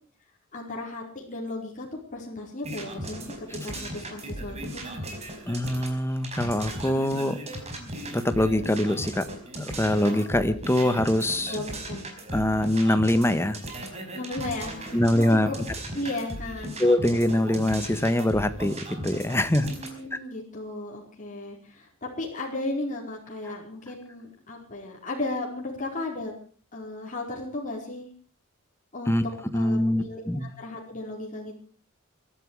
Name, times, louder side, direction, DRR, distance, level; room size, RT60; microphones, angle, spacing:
voice 1, 0.5-3.2 3.6-4.8 11.5-12.1 14.1-15.5 15.9-16.8 19.6-26.3 26.7-28.1 28.9-29.2 29.5-31.5, left 2 dB, 40° left, -2 dB, 4.9 m, -35 dB
sound 1, 2.6-20.0, right 1 dB, 30° right, 4.8 m, -37 dB
voice 2, 5.5-7.4 8.1-9.2 9.6-11.6 12.3-13.6 14.9-15.5 16.8-19.7 29.1-29.2 29.5-30.5, left 1 dB, 10° left, 10 dB, 1.4 m, -23 dB
23.5 x 12.5 x 4.9 m, 0.42 s
head